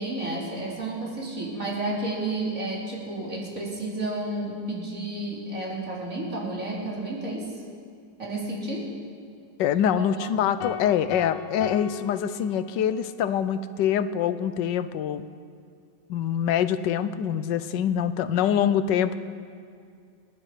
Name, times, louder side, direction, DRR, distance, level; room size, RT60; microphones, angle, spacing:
voice 1, 0.0-7.5 8.2-8.9 9.9-10.3, right 2 dB, 45° right, -4 dB, 3.8 m, -31 dB
voice 2, 9.6-15.2 16.1-19.2, left 9 dB, 80° left, 13 dB, 1.3 m, -25 dB
sound 1, 10.6-13.1, left 7 dB, 65° left, 0.9 m, -37 dB
28.0 x 10.5 x 4.9 m, 2.3 s
omnidirectional pair, 1.9 m